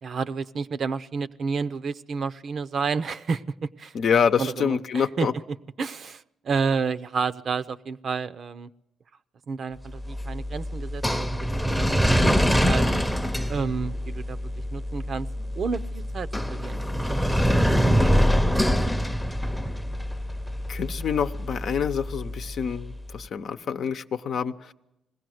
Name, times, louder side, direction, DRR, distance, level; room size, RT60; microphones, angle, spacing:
voice 1, 0.0-3.9 4.4-5.3 5.8-8.7 9.5-11.5 11.8-12.4 12.7-12.9 13.5-14.4 14.7-15.3 15.5-16.8 17.2-17.8 18.0-18.8, right 5 dB, 55° right, 12 dB, 0.7 m, -30 dB
voice 2, 3.9-5.3 17.8-18.2 20.7-24.7, left 7 dB, 60° left, 9 dB, 0.8 m, -27 dB
sound 1, 9.9-23.0, equal, ahead, 0.8 m, -25 dB
21.0 x 16.0 x 7.8 m, 0.89 s
cardioid pair, 90°, 0 cm